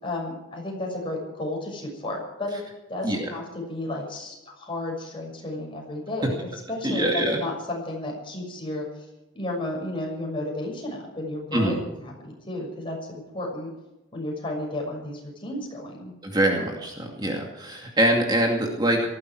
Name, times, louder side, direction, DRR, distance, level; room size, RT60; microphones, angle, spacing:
voice 1, 0.0-2.6 2.9-6.4 6.7-9.1 9.3-13.7 14.1-16.1, left 1 dB, 25° left, -1 dB, 6.4 m, -32 dB
voice 2, 6.8-7.4 11.5-11.8 16.2-19.0, right 1 dB, 20° right, 0 dB, 2.4 m, -24 dB
19.0 x 15.0 x 4.8 m, 0.99 s
head